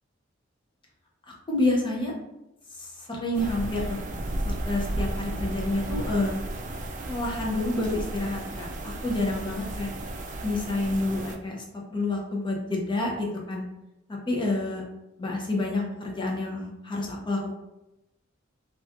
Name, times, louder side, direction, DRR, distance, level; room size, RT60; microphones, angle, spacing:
voice 1, 1.5-2.1 2.8-4.0 4.4-6.3 7.0-9.9 10.4-11.6 11.9-13.6 14.3-14.8 15.2-17.5, left 2 dB, 25° left, -2 dB, 0.6 m, -28 dB
sound 1, 3.3-11.4, right 1 dB, 40° right, 0.3 m, -33 dB
3.0 x 2.4 x 2.4 m, 0.92 s
head